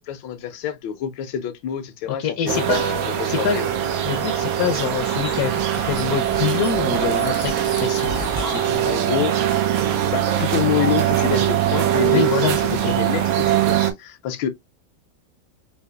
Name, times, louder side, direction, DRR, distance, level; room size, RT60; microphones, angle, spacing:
voice 1, 0.0-3.7 8.8-9.3 10.1-14.5, left 9 dB, 85° left, 1.4 m, -27 dB
voice 2, 2.2-2.8 3.3-3.6 4.1-8.8 12.1-12.6 12.8-13.0, left 8 dB, 70° left, 0.9 m, -25 dB
sound 1, 2.5-13.9, right 10 dB, 90° right, 1.5 m, -22 dB
Piano, 2.6-10.6, right 4 dB, 75° right, 0.7 m, -38 dB
sound 2, 4.9-11.8, left 2 dB, 35° left, 0.3 m, -41 dB
4.9 x 2.8 x 2.3 m
omnidirectional pair, 2.0 m